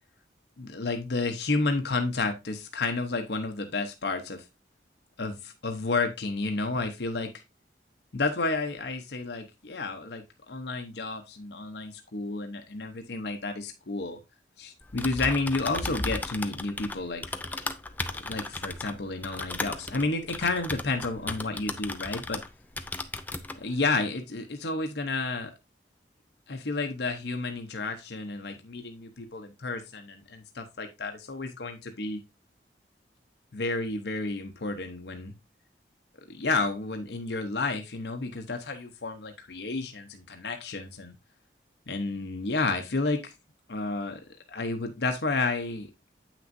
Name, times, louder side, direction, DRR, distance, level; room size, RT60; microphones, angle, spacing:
voice 1, 0.6-4.5 5.2-7.3 8.1-14.2 14.6-17.2 18.2-22.4 23.5-25.5 26.5-32.2 33.5-35.3 36.3-41.1 41.9-43.3 43.7-44.2 44.5-45.9, left 3 dB, 70° left, 5 dB, 0.9 m, -31 dB
Typing, 14.8-22.5 22.8-23.6, left 2 dB, 10° left, 0.4 m, -35 dB
8.4 x 6.0 x 2.6 m, 0.23 s
head